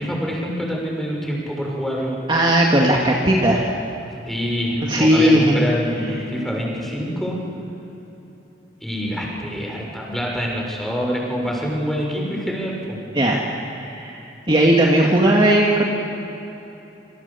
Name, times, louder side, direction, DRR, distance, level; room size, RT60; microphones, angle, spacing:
voice 1, 0.0-2.2 4.3-7.4 8.8-13.0, equal, ahead, -2 dB, 6.5 m, -26 dB
voice 2, 2.3-3.6 4.8-5.6 13.1-13.4 13.7-15.9, right 1 dB, 30° right, -1 dB, 2.2 m, -17 dB
28.0 x 25.5 x 7.2 m, 3.0 s
head